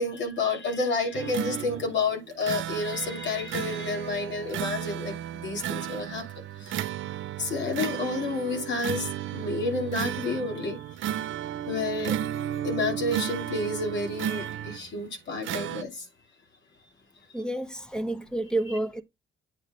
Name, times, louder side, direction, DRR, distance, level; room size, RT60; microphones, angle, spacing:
voice 1, 0.0-6.2 6.6-6.9 7.4-10.9 11.7-12.2 12.6-16.1, left 3 dB, 65° left, 2.9 m, -30 dB
sound 1, 1.1-15.0 15.4-15.8, right 11 dB, 75° right, 0.7 m, -34 dB
voice 2, 17.3-19.0, right 1 dB, 5° left, 1.0 m, -29 dB
8.8 x 3.9 x 5.0 m
cardioid pair, 90°, 20 cm